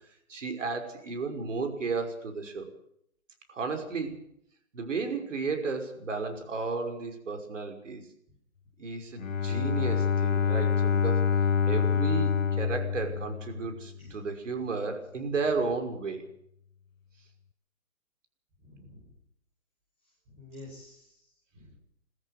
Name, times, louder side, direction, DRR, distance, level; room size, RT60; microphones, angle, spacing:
voice 1, 0.3-2.7 3.5-4.2 4.7-8.0 8.8-11.3 11.7-16.3, right 4 dB, 60° right, 5 dB, 5.8 m, -33 dB
Bowed string instrument, 9.2-14.0, left 6 dB, 65° left, 1.1 m, -26 dB
voice 2, 18.6-19.1 20.3-21.3 21.5-21.8, left 2 dB, 15° right, -2 dB, 5.2 m, -49 dB
22.5 x 14.5 x 8.2 m, 0.72 s
hypercardioid pair, 165°, 42 cm